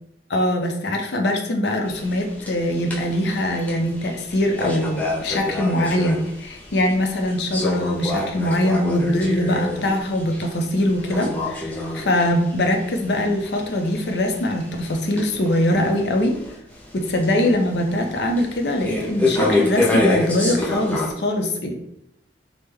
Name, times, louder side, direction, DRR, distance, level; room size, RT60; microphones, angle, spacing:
voice 1, 0.3-16.4 16.9-21.7, left 1 dB, 70° left, 3 dB, 0.5 m, -22 dB
sound 1, 1.8-21.1, left 2 dB, 10° left, 0.5 m, -28 dB
3.4 x 2.1 x 3.2 m, 0.76 s
head